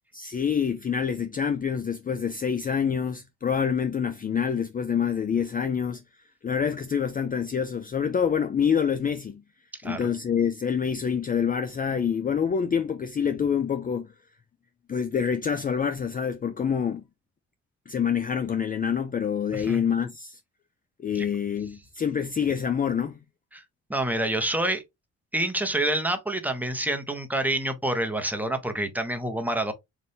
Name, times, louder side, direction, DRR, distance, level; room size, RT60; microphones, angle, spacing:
voice 1, 0.1-6.0 6.4-9.4 9.8-14.1 14.9-17.0 17.9-20.4 21.0-23.2, left 7 dB, 30° left, 0.5 m, -26 dB
voice 2, 23.9-24.8 25.3-29.7, right 1 dB, 5° right, 1.1 m, -27 dB
4.1 x 2.6 x 3.4 m
cardioid pair, 90°, 30 cm